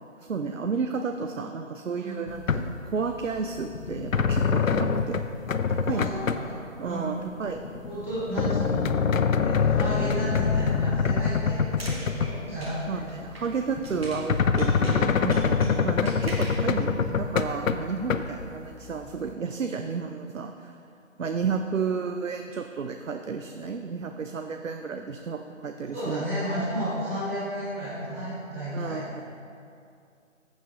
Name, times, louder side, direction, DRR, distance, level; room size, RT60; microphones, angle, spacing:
voice 1, 0.2-5.2 5.7-6.2 6.8-7.6 12.9-20.8 21.2-26.4 28.7-29.2, right 5 dB, 70° right, 6 dB, 0.6 m, -32 dB
sound 1, 2.3-2.9 3.2-6.5 7.2-12.7 13.0-13.1 13.8-18.5 19.0-19.1, left 6 dB, 80° left, 0.6 m, -25 dB
voice 2, 5.9-7.1 7.8-9.1 9.4-13.0 15.6-15.8 25.9-29.0, right 1 dB, 10° right, -17 dB, 2.2 m, -33 dB
sound 2, 11.5-14.3 14.6-16.7, right 1 dB, 50° right, 1.4 m, -42 dB
14.0 x 7.4 x 2.5 m, 2.5 s
figure-of-eight pair, 175°, 40 cm